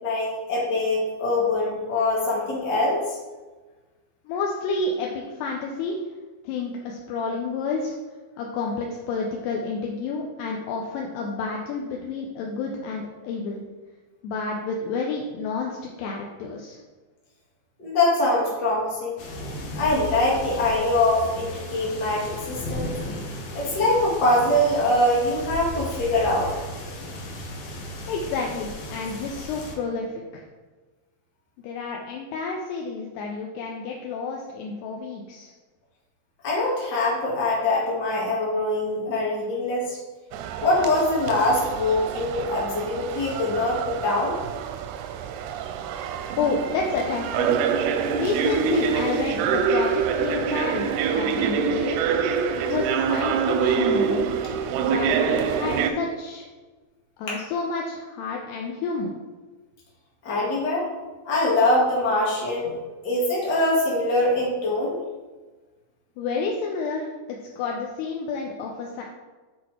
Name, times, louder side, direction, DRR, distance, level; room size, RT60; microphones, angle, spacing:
voice 1, 0.0-3.2 17.8-19.2 19.7-22.9 23.5-26.5 36.4-40.0 40.6-44.4 57.3-57.4 60.2-60.9 61.2-62.7 63.0-65.0, left 2 dB, 50° left, -6 dB, 1.2 m, -23 dB
voice 2, 4.3-6.0 6.4-7.9 8.4-13.6 14.2-16.8 28.1-30.4 31.6-35.5 46.4-47.6 48.1-50.9 51.1-52.0 52.5-54.3 54.8-56.5 57.2-59.2 66.2-69.0, left 4 dB, 80° left, 0 dB, 2.6 m, -30 dB
sound 1, 19.2-29.7, left 1 dB, 65° left, 2.4 m, -35 dB
sound 2, 40.3-55.9, right 6 dB, 85° right, 2.4 m, -26 dB
8.4 x 4.2 x 4.4 m, 1.3 s
omnidirectional pair, 5.1 m